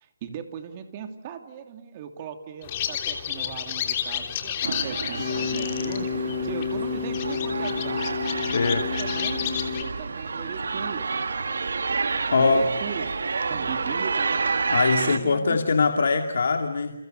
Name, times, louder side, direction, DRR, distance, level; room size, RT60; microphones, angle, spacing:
voice 1, 0.0-8.1 8.6-9.5 9.8-11.3 12.4-13.1 13.5-14.5 14.9-15.6, right 8 dB, 25° right, 7 dB, 2.8 m, -38 dB
sound 1, 2.6-9.8, left 8 dB, 25° left, 3.1 m, -29 dB
sound 2, 4.6-15.2, right 4 dB, 75° right, 2.2 m, -29 dB
voice 2, 12.3-12.7 14.7-16.9, left 4 dB, 65° left, 5 dB, 2.6 m, -22 dB
30.0 x 29.5 x 6.7 m, 0.96 s
hypercardioid pair, 170°, 0 cm